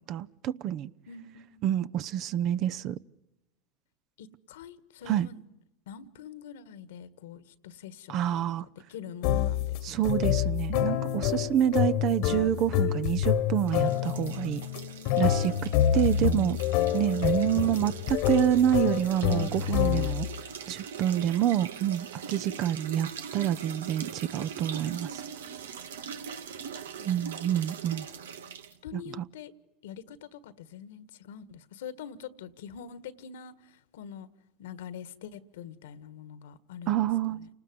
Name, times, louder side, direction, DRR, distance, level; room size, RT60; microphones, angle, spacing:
voice 1, 0.1-0.9 1.6-3.0 5.1-5.3 8.1-8.6 9.8-14.6 15.2-15.4 15.9-16.6 16.9-20.3 20.7-25.2 27.0-28.1 28.9-29.2 36.9-37.4, right 11 dB, 50° right, 0.9 m, -27 dB
voice 2, 1.1-1.6 4.2-5.4 5.9-10.2 15.1-16.1 20.2-20.3 21.1-21.5 27.0-27.4 28.8-29.5 29.8-34.3 34.6-37.0 37.3-37.5, left 7 dB, 80° left, 1.6 m, -45 dB
sound 1, 9.2-20.4, left 10 dB, 65° left, 1.5 m, -27 dB
sound 2, 13.6-28.8, right 7 dB, 85° right, 1.3 m, -42 dB
29.5 x 19.5 x 9.6 m
hypercardioid pair, 100°, 0 cm